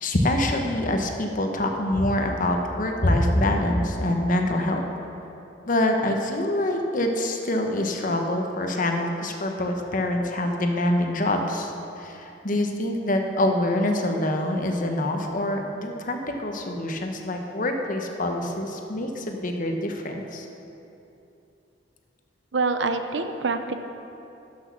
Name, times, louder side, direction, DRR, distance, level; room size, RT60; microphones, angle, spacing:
voice 1, 0.0-4.8 5.7-20.5, left 1 dB, 45° left, 3 dB, 1.0 m, -25 dB
voice 2, 22.5-23.8, right 4 dB, 70° right, 8 dB, 0.7 m, -25 dB
12.0 x 6.4 x 6.0 m, 2.9 s
head